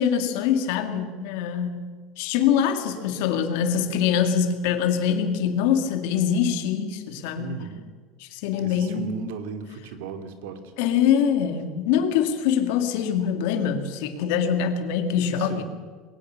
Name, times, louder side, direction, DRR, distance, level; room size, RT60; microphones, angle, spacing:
voice 1, 0.0-1.8 2.2-7.7 8.2-9.1 10.8-15.6, left 8 dB, 65° left, 7 dB, 2.6 m, -24 dB
voice 2, 7.4-7.8 8.6-10.7 15.4-15.6, right 5 dB, 80° right, 8 dB, 2.8 m, -37 dB
21.5 x 19.0 x 6.7 m, 1.5 s
cardioid pair, 170°, 0 cm